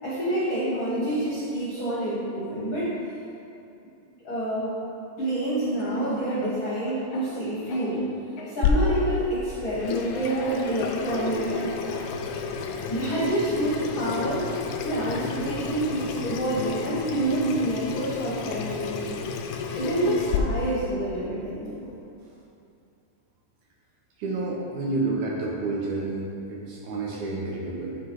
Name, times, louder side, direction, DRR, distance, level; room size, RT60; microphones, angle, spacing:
voice 1, 0.0-2.9 4.2-4.8 5.2-8.0 8.5-12.1 12.9-19.3 19.7-21.9, right 1 dB, 50° left, -9 dB, 1.5 m, -28 dB
Speech / Cough, 5.8-8.1 8.4-9.2 10.1-11.3 12.2-14.6, left 2 dB, 70° left, 2.0 m, -41 dB
Water tap faucet / Sink (filling or washing), 8.6-20.4, left 5 dB, 90° left, 1.7 m, -31 dB
voice 2, 24.2-28.0, right 3 dB, 70° right, -3 dB, 2.1 m, -29 dB
10.5 x 4.1 x 4.6 m, 2.6 s
omnidirectional pair, 4.0 m